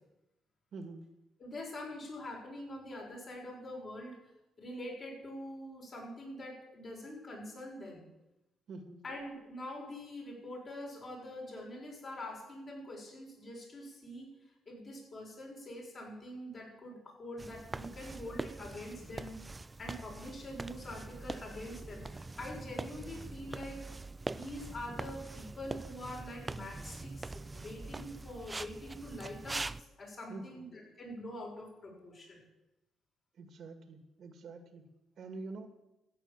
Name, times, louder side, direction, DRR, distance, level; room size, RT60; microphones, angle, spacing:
voice 1, 0.7-1.1 8.7-9.0 30.3-30.7 33.4-34.8 35.2-35.7, right 3 dB, 60° right, 7 dB, 2.0 m, -46 dB
voice 2, 1.4-4.2 4.6-8.1 9.0-14.4 14.7-23.9 24.3-32.4, left 1 dB, 45° left, -1 dB, 6.7 m, -45 dB
sound 1, 17.4-29.8, right 3 dB, 20° right, 0.4 m, -43 dB
14.0 x 9.1 x 7.6 m, 0.95 s
cardioid pair, 90°, 0 cm